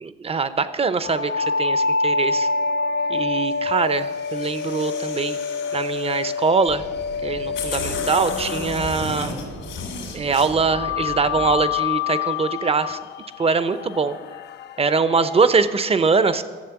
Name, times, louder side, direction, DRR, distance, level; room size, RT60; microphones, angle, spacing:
voice 1, 0.0-2.5 3.1-5.4 5.7-6.8 7.2-9.3 10.1-13.0 13.4-14.2 14.8-16.4, right 4 dB, 30° right, 13 dB, 0.7 m, -22 dB
sound 1, 1.0-9.8 10.7-15.5, left 4 dB, 60° left, 0.4 m, -27 dB
sound 2, 4.1-6.5 7.1-7.2 7.5-10.5, left 5 dB, 85° left, 2.9 m, -34 dB
sound 3, 6.7-11.8, right 3 dB, 70° right, 2.5 m, -39 dB
12.5 x 7.2 x 7.1 m, 1.5 s
cardioid pair, 90°, 20 cm